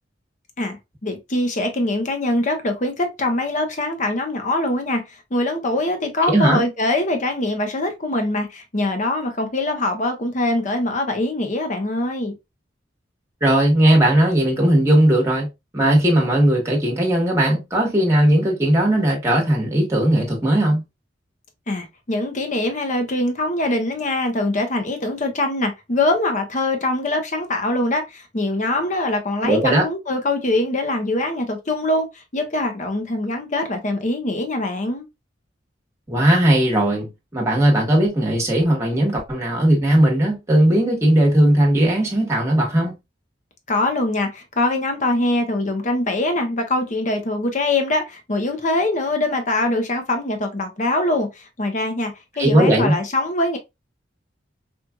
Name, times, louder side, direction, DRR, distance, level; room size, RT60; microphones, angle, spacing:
voice 1, 0.6-12.4 21.7-35.0 43.7-53.6, left 2 dB, 40° left, 0.8 m, -23 dB
voice 2, 6.3-6.6 13.4-20.8 29.4-29.8 36.1-42.9 52.4-53.0, right 1 dB, 15° right, 1.3 m, -17 dB
4.5 x 2.5 x 2.2 m
head